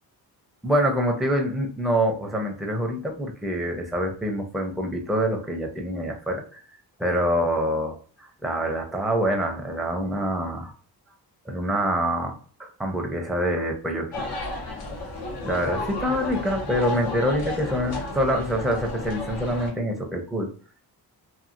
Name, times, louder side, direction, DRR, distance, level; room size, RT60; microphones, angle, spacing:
voice 1, 0.6-6.6 7.0-8.0 8.4-10.7 11.5-14.3 15.4-20.5, equal, ahead, 1 dB, 0.6 m, -26 dB
sound 1, 14.1-19.7, left 2 dB, 70° left, 1.2 m, -32 dB
2.8 x 2.7 x 2.5 m, 0.43 s
cardioid pair, 110°, 38 cm